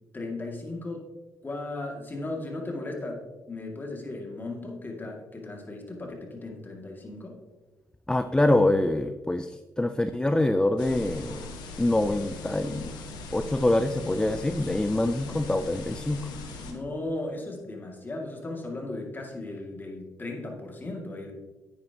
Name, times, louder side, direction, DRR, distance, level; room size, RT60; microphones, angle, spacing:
voice 1, 0.1-1.1 1.4-3.2 3.5-7.4 16.6-21.3, left 2 dB, 30° left, 0 dB, 2.2 m, -36 dB
voice 2, 8.1-11.4 11.8-12.9 13.3-16.2, left 1 dB, 10° left, 9 dB, 0.4 m, -25 dB
sound 1, 10.8-16.7, left 3 dB, 90° left, 1.4 m, -40 dB
9.8 x 8.8 x 2.9 m, 1.2 s
cardioid pair, 80°, 7 cm